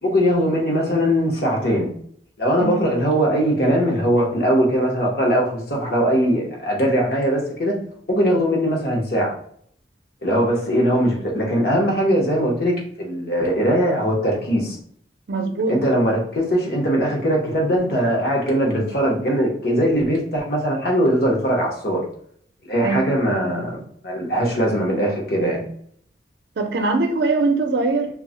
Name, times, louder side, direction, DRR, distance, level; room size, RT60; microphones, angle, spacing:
voice 1, 0.0-1.9 2.4-7.8 8.1-9.4 10.2-14.8 15.7-22.0 22.6-25.6, equal, 60° left, -2 dB, 0.8 m, -20 dB
voice 2, 15.3-15.7 22.8-23.1 26.6-28.1, right 3 dB, 70° right, 4 dB, 0.5 m, -21 dB
2.3 x 2.1 x 3.7 m, 0.63 s
head